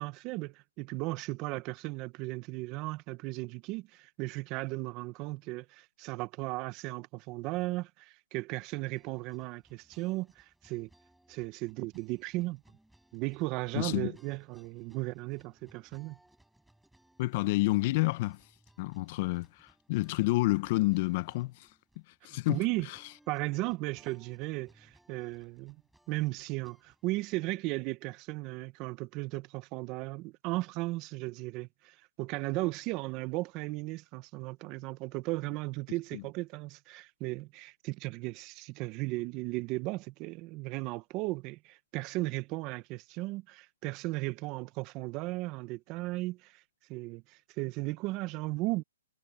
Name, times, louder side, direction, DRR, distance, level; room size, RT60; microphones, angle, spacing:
voice 1, 0.0-10.9 11.3-12.6 13.1-16.2 22.5-22.9 23.3-25.8 26.1-46.6 46.9-48.8, right 21 dB, 25° right, 0.8 m, -36 dB
sound 1, 8.9-27.1, right 1 dB, ahead, 6.6 m, -66 dB
voice 2, 13.7-14.1 17.2-18.4 18.8-21.7 22.2-23.0 36.1-36.2, left 20 dB, 30° left, 0.9 m, -29 dB
hypercardioid pair, 160°, 0 cm